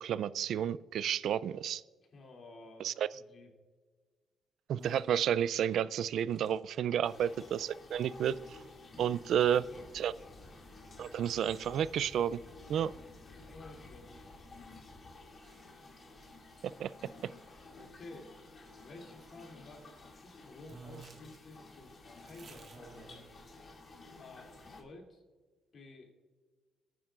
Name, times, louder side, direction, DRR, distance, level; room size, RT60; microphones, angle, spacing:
voice 1, 0.0-1.8 2.8-3.1 4.7-8.6 9.0-9.6 9.9-10.1 11.0-12.4 12.7-12.9 16.8-16.9, right 9 dB, 70° right, 18 dB, 0.3 m, -31 dB
voice 2, 2.1-3.5 9.3-10.0 13.3-14.2 17.1-17.3 17.8-18.3 18.8-23.5 24.2-25.2 25.7-26.1, left 2 dB, 55° left, 1 dB, 2.7 m, -53 dB
sound 1, 4.8-17.9 18.6-20.0 20.3-20.4 20.7-23.8, right 4 dB, 50° right, 1.7 m, -60 dB
sound 2, 7.0-24.8, left 3 dB, 40° left, 2.3 m, -54 dB
sound 3, 9.3-15.1, left 2 dB, 20° left, 1.8 m, -56 dB
18.5 x 9.3 x 2.5 m, 1.4 s
cardioid pair, 90°, 0 cm